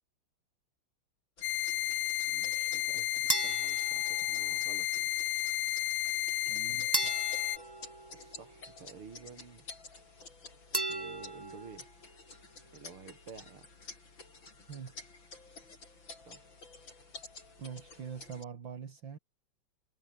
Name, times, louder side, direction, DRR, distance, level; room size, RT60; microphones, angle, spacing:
sound 1, 1.4-7.6, left 13 dB, 80° left, 0.8 m, -32 dB
sound 2, 1.4-18.4, left 3 dB, 65° left, 5.5 m, -52 dB
voice 1, 2.3-5.1 6.7-6.9 8.1-9.6 10.9-11.9 12.7-13.7 16.2-16.5, right 5 dB, 85° right, 3.8 m, -52 dB
sound 3, 3.3-4.8 6.9-8.8 10.7-11.9, right 2 dB, 15° right, 0.8 m, -37 dB
voice 2, 6.5-7.1 14.7-14.9 17.6-19.2, right 7 dB, 60° right, 2.7 m, -44 dB
omnidirectional pair, 2.3 m